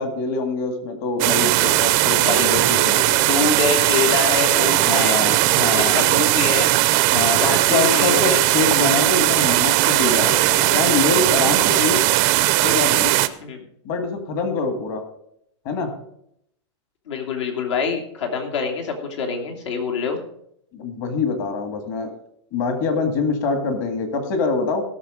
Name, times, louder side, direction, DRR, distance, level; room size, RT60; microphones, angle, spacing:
voice 1, 0.0-3.2 4.8-6.0 7.1-12.0 12.6-13.1 13.8-15.0 15.6-15.9 20.7-22.1 22.5-24.8, left 4 dB, 40° left, 6 dB, 2.1 m, -24 dB
sound 1, 1.2-13.3, right 17 dB, 30° right, 0.5 m, -18 dB
voice 2, 3.1-5.2 5.8-6.7 7.4-8.4 13.4-13.6 17.1-20.2, left 5 dB, 70° left, 2 dB, 2.9 m, -25 dB
17.0 x 6.7 x 5.1 m, 0.74 s
supercardioid pair, 165°, 16 cm